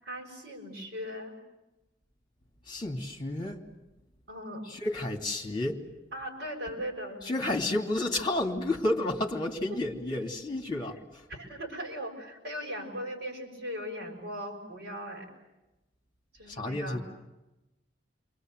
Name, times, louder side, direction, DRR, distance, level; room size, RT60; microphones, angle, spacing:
voice 1, 0.0-1.4 4.3-4.7 6.1-7.3 11.3-15.3 16.3-17.0, equal, 60° right, 0 dB, 6.5 m, -38 dB
voice 2, 2.7-3.6 4.7-5.8 7.2-11.2 16.5-17.0, left 2 dB, 25° left, 3 dB, 2.8 m, -31 dB
29.5 x 23.5 x 8.0 m, 1.0 s
head